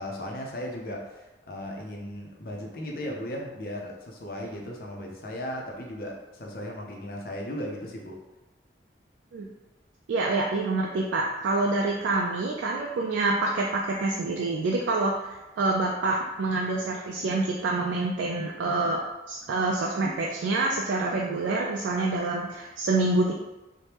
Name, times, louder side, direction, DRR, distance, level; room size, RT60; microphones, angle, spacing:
voice 1, 0.0-8.2, left 1 dB, 55° left, 0 dB, 0.5 m, -36 dB
voice 2, 10.1-23.3, right 2 dB, 85° right, -1 dB, 0.3 m, -27 dB
3.2 x 2.1 x 2.9 m, 1.0 s
head